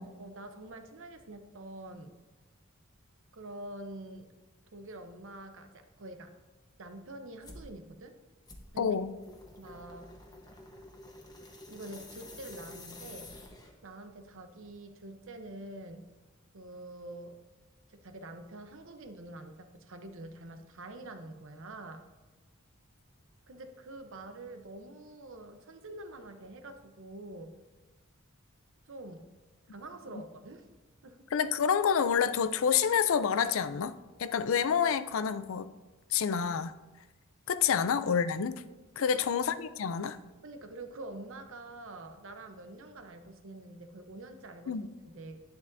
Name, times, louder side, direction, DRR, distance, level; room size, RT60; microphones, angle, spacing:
voice 1, 0.2-2.1 3.3-4.3 4.7-6.3 6.8-8.1 8.7-9.0 9.6-10.1 11.7-13.3 13.8-16.1 16.5-17.3 17.9-22.0 23.5-27.6 28.9-29.3 29.7-30.7 31.0-31.2 39.0-39.2 40.4-44.8 45.0-45.4, right 2 dB, 65° right, 7 dB, 0.8 m, -46 dB
sound 1, 7.4-7.7 8.5-13.9, left 2 dB, 20° left, 1.1 m, -49 dB
voice 2, 8.8-9.1 31.3-33.9 34.2-35.7 36.1-36.7 37.5-38.6 39.0-40.2 44.7-44.9, left 7 dB, 70° left, 13 dB, 0.4 m, -28 dB
10.5 x 9.8 x 2.6 m, 1.2 s
head